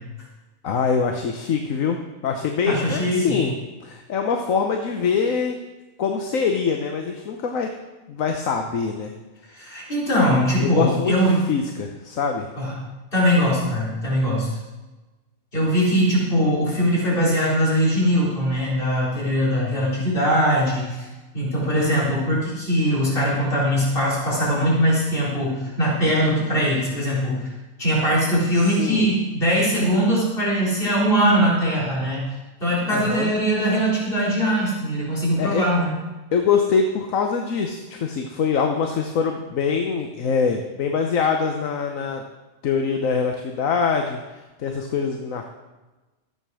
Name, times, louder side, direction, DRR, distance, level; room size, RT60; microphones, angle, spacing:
voice 1, 0.6-3.6 3.8-5.6 6.0-7.7 8.1-9.1 10.6-12.5 28.5-29.1 32.9-33.3 35.4-35.7 36.3-42.2 42.6-45.4, left 5 dB, 85° left, 4 dB, 1.4 m, -24 dB
voice 2, 2.6-3.4 9.5-11.4 12.6-12.7 13.1-14.5 15.5-21.1 21.3-27.4 27.8-32.2 32.6-36.0, equal, 45° left, -6 dB, 4.3 m, -21 dB
13.5 x 8.1 x 6.2 m, 1.2 s
omnidirectional pair, 1.3 m